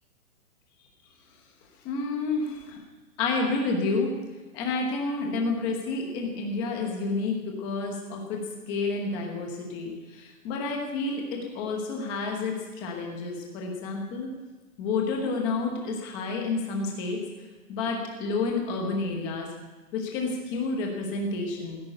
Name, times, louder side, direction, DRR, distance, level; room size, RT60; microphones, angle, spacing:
voice 1, 1.8-2.8 3.2-4.1 4.5-8.4 8.7-14.3 14.8-17.2 17.7-19.5 19.9-21.8, left 3 dB, 10° left, 1 dB, 1.0 m, -30 dB
16.0 x 8.6 x 10.0 m, 1.3 s
hypercardioid pair, 170°, 44 cm